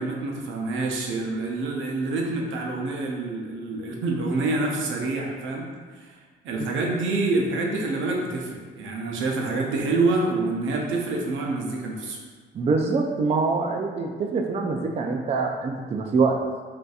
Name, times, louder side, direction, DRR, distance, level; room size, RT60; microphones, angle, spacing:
voice 1, 0.0-5.7 5.9-6.2 6.4-12.2, right 3 dB, 80° right, 0 dB, 0.6 m, -27 dB
voice 2, 12.5-16.4, right 4 dB, 35° right, 1 dB, 0.4 m, -24 dB
3.8 x 2.6 x 2.4 m, 1.5 s
cardioid pair, 90°, 20 cm